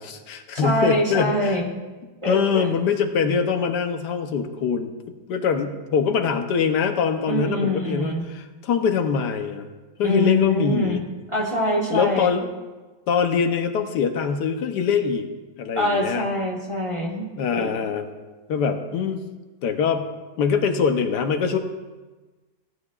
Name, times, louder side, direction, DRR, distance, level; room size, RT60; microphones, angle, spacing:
voice 1, 0.0-1.6 2.3-4.9 5.3-9.7 10.0-11.0 11.9-12.5 13.1-15.3 15.6-16.2 17.4-18.1 18.5-19.2 19.6-20.1 20.4-21.6, left 6 dB, 65° left, 7 dB, 1.4 m, -23 dB
voice 2, 0.5-1.7 2.2-2.7 7.3-8.3 10.0-11.0 11.3-12.3 15.7-17.7, left 1 dB, 20° right, -2 dB, 1.2 m, -24 dB
16.0 x 9.6 x 2.4 m, 1.2 s
omnidirectional pair, 2.0 m